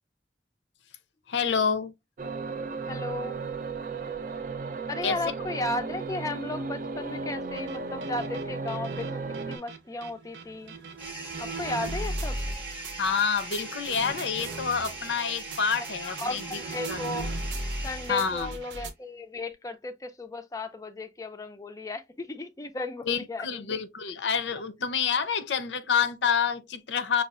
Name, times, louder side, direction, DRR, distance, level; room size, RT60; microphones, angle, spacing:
voice 1, 1.3-1.9 5.0-5.2 13.0-16.6 16.9-17.0 18.1-18.5 23.1-27.2, left 6 dB, 85° left, 0.5 m, -28 dB
sound 1, 2.2-9.6, right 4 dB, 50° right, 0.4 m, -35 dB
voice 2, 2.8-3.4 4.9-10.7 11.4-12.4 16.0-17.3 17.8-23.8 24.5-24.6, left 2 dB, 20° left, 0.3 m, -35 dB
sound 2, 7.5-18.9, right 2 dB, 80° right, 0.7 m, -37 dB
sound 3, 11.0-18.7, right 2 dB, 10° right, 0.7 m, -41 dB
5.4 x 2.3 x 2.3 m
head